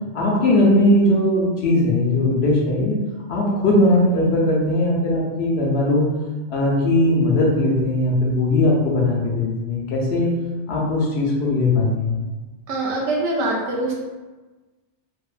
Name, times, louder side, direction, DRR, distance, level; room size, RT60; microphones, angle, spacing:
voice 1, 0.1-3.0 3.3-6.1 6.5-10.3 10.7-12.2, left 1 dB, 65° left, -3 dB, 0.8 m, -19 dB
voice 2, 12.7-13.9, right 2 dB, 75° right, -2 dB, 0.9 m, -23 dB
2.6 x 2.2 x 2.4 m, 1.2 s
omnidirectional pair, 1.2 m